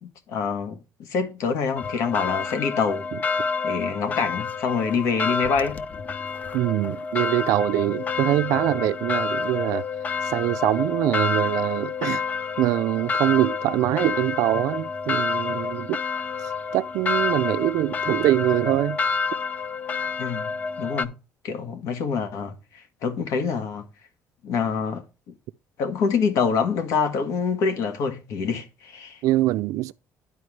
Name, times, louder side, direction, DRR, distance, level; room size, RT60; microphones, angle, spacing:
voice 1, 0.0-0.8 1.1-3.1 3.6-5.8 20.2-20.5 20.8-21.1 21.4-23.8 24.4-25.0 25.8-29.2, left 5 dB, 70° left, 1.6 m, -26 dB
sound 1, 1.8-21.1, left 5 dB, 30° left, 0.4 m, -28 dB
voice 2, 6.5-9.8 10.2-12.2 12.6-16.0 16.7-19.0 29.2-29.9, right 16 dB, 75° right, 0.4 m, -23 dB
11.0 x 4.6 x 3.2 m
cardioid pair, 155°, 6 cm